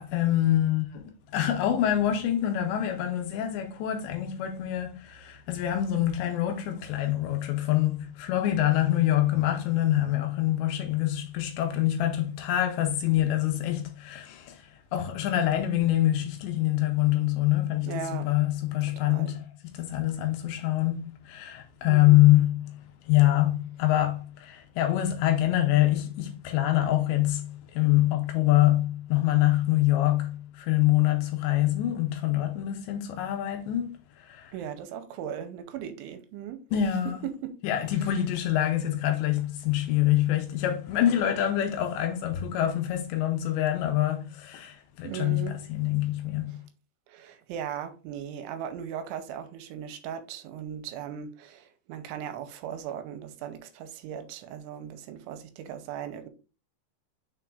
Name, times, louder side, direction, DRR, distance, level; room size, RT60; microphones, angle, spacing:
voice 1, 0.0-19.4 19.7-22.8 23.1-34.5 36.7-37.2 37.6-46.6, left 13 dB, 85° left, 2.7 m, -25 dB
voice 2, 17.9-18.3 19.0-19.4 21.9-22.3 34.5-36.6 37.2-37.5 38.0-38.2 45.0-45.6 46.5-46.6 47.1-56.3, right 9 dB, 85° right, 3.1 m, -38 dB
6.7 x 5.9 x 2.5 m
omnidirectional pair, 5.5 m